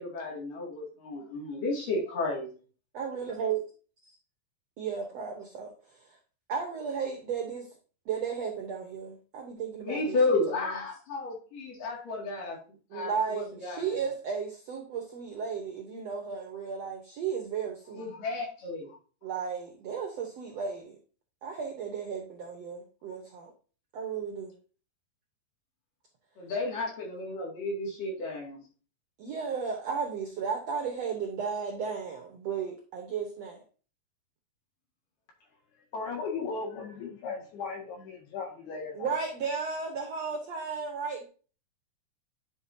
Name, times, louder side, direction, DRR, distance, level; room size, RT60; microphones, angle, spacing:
voice 1, 0.0-2.5 9.8-12.6 12.9-13.8 17.9-19.0 26.4-28.6, left 3 dB, 60° left, -2 dB, 3.8 m, -32 dB
voice 2, 2.9-3.6 4.0-4.1 4.8-6.2 6.5-7.7 8.0-10.8 12.9-18.1 19.2-20.9 21.4-23.5 23.9-24.5 29.2-33.6 38.9-41.2, right 6 dB, 75° right, 2 dB, 1.5 m, -34 dB
voice 3, 35.9-39.1, left 4 dB, 80° left, 0 dB, 3.9 m, -37 dB
9.9 x 5.9 x 2.8 m, 0.37 s
omnidirectional pair, 4.5 m